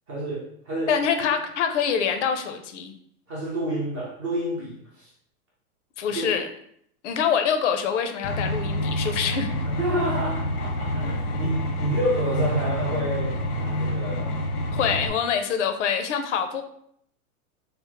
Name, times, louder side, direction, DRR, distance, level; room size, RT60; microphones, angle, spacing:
voice 1, 0.1-0.9 3.3-5.1 6.1-6.3 9.6-14.3 14.9-15.0, right 1 dB, 20° right, -4 dB, 0.4 m, -29 dB
voice 2, 0.9-2.9 6.0-6.5 7.0-9.5 14.7-16.6, left 7 dB, 55° left, 7 dB, 0.5 m, -25 dB
sound 1, 8.2-15.1, equal, 90° left, 0.9 m, -28 dB
3.5 x 2.0 x 3.0 m, 0.68 s
hypercardioid pair, 145°, 44 cm